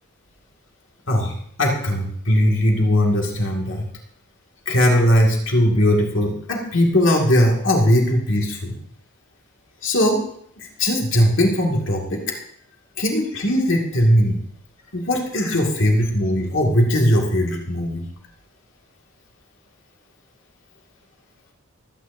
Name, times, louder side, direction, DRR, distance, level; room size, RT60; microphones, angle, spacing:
voice 1, 1.1-3.9 4.7-8.7 9.8-10.2 10.6-12.2 13.0-14.4 14.9-18.0, equal, 60° left, -1 dB, 2.2 m, -19 dB
23.0 x 9.5 x 2.7 m, 0.66 s
head